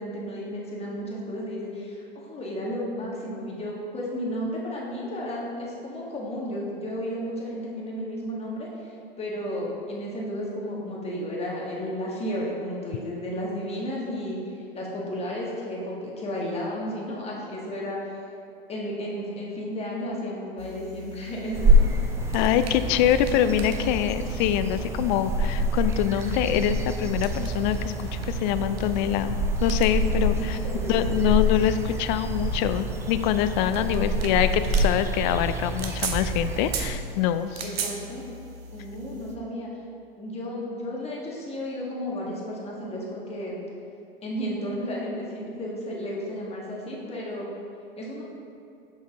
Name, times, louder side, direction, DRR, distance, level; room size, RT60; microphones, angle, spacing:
voice 1, 0.0-8.9 9.2-18.1 18.7-21.9 30.6-31.0 33.9-34.0 37.6-38.2 38.7-39.7 40.2-43.6 44.2-47.4 48.0-48.2, equal, 20° left, -4 dB, 1.6 m, -33 dB
sound 1, 20.6-39.4, right 3 dB, 85° right, 0.8 m, -40 dB
sound 2, 21.5-36.9, right 1 dB, 10° right, 0.5 m, -26 dB
voice 2, 22.3-30.6 30.9-37.6, left 11 dB, 50° left, 11 dB, 0.4 m, -25 dB
6.5 x 5.2 x 3.9 m, 2.5 s
hypercardioid pair, 100°, 30 cm